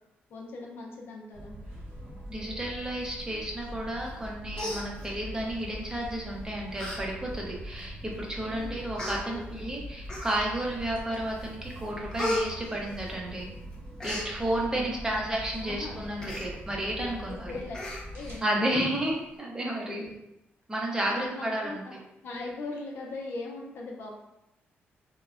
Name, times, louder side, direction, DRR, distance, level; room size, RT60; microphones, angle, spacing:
voice 1, 0.3-1.6 8.4-8.9 9.2-9.6 14.7-15.1 15.5-16.0 17.0-17.8 18.1-18.5 19.8-20.3 21.1-21.9 22.2-24.2, left 2 dB, 65° left, -1 dB, 0.5 m, -40 dB
sound 1, 1.3-18.4, equal, 75° right, 0.9 m, -42 dB
voice 2, 2.3-13.5 14.0-17.5 18.4-20.1 20.7-22.0, right 1 dB, 20° right, -2 dB, 0.6 m, -32 dB
Human voice, 4.1-4.3 4.5-5.4 6.2-6.4 6.8-7.0 7.4-7.5 8.3-8.4 8.9-9.2 10.1-10.6 11.1-11.5 11.7-13.4 13.7-14.3 16.2-16.5 16.9-17.0 17.2-17.4 17.7-18.4 18.8-18.9, left 1 dB, 20° left, 0.7 m, -34 dB
3.1 x 2.1 x 2.4 m, 0.86 s
cardioid pair, 105°, 4 cm